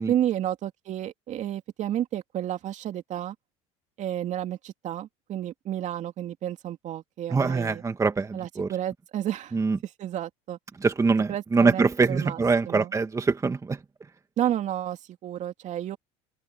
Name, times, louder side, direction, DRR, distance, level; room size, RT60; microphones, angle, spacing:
voice 1, 0.1-3.3 4.0-7.8 8.3-9.6 10.0-10.6 11.3-12.9 14.4-16.0, right 11 dB, 50° right, 2.6 m, -31 dB
voice 2, 7.3-8.7 9.5-9.8 10.8-13.8, right 4 dB, 20° right, 1.7 m, -24 dB
open air
supercardioid pair, 90°, 15 cm